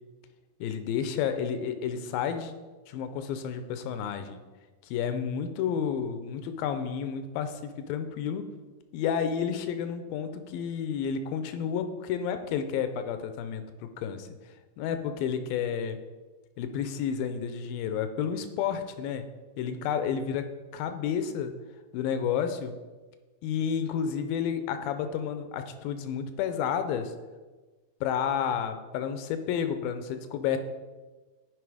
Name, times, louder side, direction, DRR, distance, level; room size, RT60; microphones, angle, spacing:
voice 1, 0.6-2.5 2.9-4.4 4.9-8.4 8.9-13.6 14.0-14.3 14.8-16.0 16.6-19.3 19.6-20.4 20.7-21.5 21.9-22.7 23.4-27.1 28.0-30.6, left 7 dB, 90° left, 9 dB, 2.4 m, -31 dB
9.4 x 5.1 x 4.8 m, 1.3 s
omnidirectional pair, 4.1 m